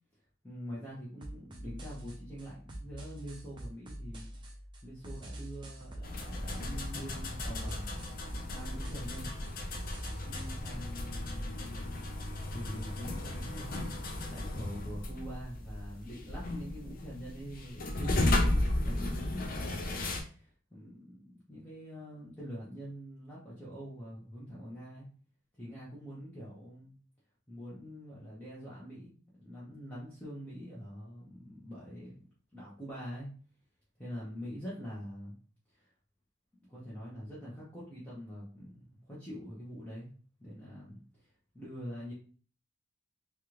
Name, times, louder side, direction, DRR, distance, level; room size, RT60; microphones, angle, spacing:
voice 1, 0.4-4.3 4.8-9.3 10.2-12.1 12.5-25.1 25.6-26.9 27.5-29.1 29.4-32.1 32.5-33.3 34.0-35.4 35.7-35.8 36.7-40.1 40.4-42.1, equal, 10° left, -9 dB, 0.8 m, -45 dB
sound 1, 1.2-10.6, right 1 dB, 20° right, 0.4 m, -45 dB
sound 2, 6.0-20.2, left 1 dB, 40° left, 0.5 m, -35 dB
3.4 x 2.4 x 2.9 m, 0.41 s
head